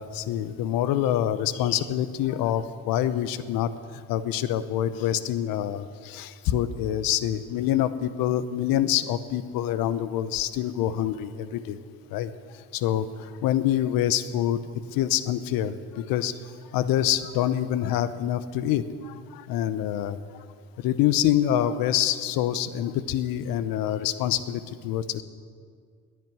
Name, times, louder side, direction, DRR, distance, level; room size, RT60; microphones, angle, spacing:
voice 1, 0.0-3.7 4.1-11.8 12.1-12.3 12.7-14.6 14.9-16.3 16.7-20.2 20.8-25.2, left 11 dB, 65° left, 14 dB, 0.9 m, -26 dB
10.5 x 9.4 x 9.5 m, 2.1 s
supercardioid pair, 90°, 38 cm